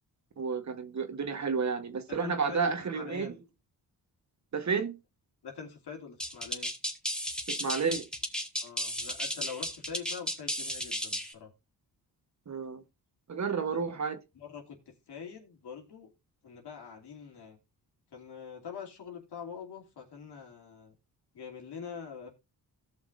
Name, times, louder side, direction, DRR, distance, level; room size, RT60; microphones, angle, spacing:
voice 1, 0.4-3.3 4.5-4.9 7.5-8.0 12.5-12.8 13.3-14.2, right 5 dB, 45° right, 1.2 m, -31 dB
voice 2, 2.1-3.3 5.4-6.7 8.6-11.5 13.7-13.8 14.3-16.1 16.4-17.6 18.1-21.0 21.3-22.3, left 6 dB, 80° left, 2.9 m, -44 dB
sound 1, 6.2-11.3, equal, ahead, 1.5 m, -34 dB
17.5 x 5.9 x 2.5 m
cardioid pair, 95°, 39 cm